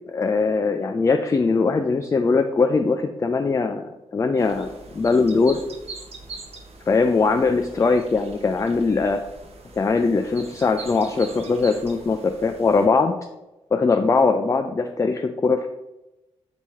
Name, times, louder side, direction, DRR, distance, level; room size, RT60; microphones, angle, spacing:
voice 1, 0.1-5.6 6.9-9.2 9.7-13.1 13.7-15.7, left 4 dB, 25° left, 7 dB, 0.3 m, -21 dB
sound 1, 4.4-12.9, right 3 dB, 50° right, 0.8 m, -42 dB
3.5 x 3.0 x 4.2 m, 0.97 s
hypercardioid pair, 45°, 13 cm